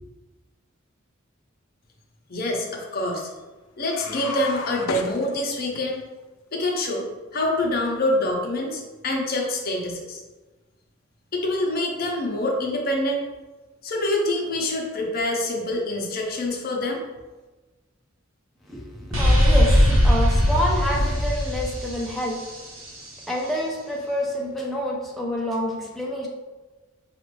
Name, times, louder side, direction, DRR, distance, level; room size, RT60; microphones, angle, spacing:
voice 1, 2.3-3.3 3.8-6.0 6.5-7.1 7.3-10.2 11.3-13.3 13.8-17.0, left 1 dB, 50° left, 0 dB, 0.7 m, -26 dB
sound 1, 3.8-5.8, left 4 dB, 85° left, 0.4 m, -33 dB
voice 2, 18.7-22.4 23.3-26.3, equal, ahead, -4 dB, 0.5 m, -27 dB
sound 2, 19.1-22.9, equal, 85° right, 1.0 m, -19 dB
4.9 x 2.5 x 3.1 m, 1.2 s
head